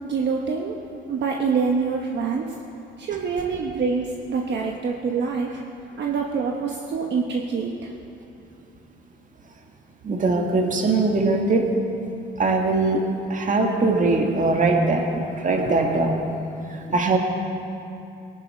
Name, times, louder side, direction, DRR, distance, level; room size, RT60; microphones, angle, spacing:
voice 1, 0.0-0.8 1.1-2.5 3.0-5.6 6.0-7.9, right 5 dB, 60° right, 0 dB, 1.1 m, -25 dB
voice 2, 10.0-11.7 12.4-13.0 13.3-15.1 15.4-16.2 16.7-17.2, right 3 dB, 40° right, 2 dB, 1.8 m, -21 dB
19.0 x 11.5 x 4.4 m, 2.7 s
cardioid pair, 90°, 20 cm